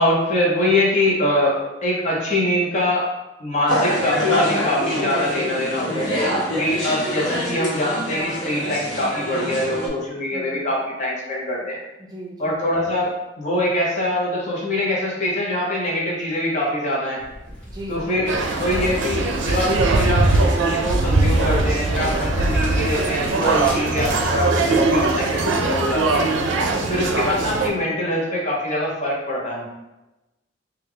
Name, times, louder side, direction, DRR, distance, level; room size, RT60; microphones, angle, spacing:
voice 1, 0.0-3.1 3.4-6.1 6.5-11.8 12.4-17.2 17.9-26.3 26.8-29.7, left 1 dB, 40° left, -4 dB, 0.8 m, -23 dB
sound 1, 3.7-9.9, left 1 dB, 80° left, 1.0 m, -25 dB
voice 2, 5.8-6.9 10.3-10.6 12.0-12.6 17.7-18.1 25.2-25.7 26.6-27.0, right 1 dB, 20° right, -3 dB, 0.5 m, -37 dB
sound 2, 17.2-24.3, equal, 5° left, 1.0 m, -37 dB
sound 3, 18.3-27.7, right 2 dB, 80° right, 0.4 m, -21 dB
3.3 x 2.3 x 3.3 m, 1.0 s
head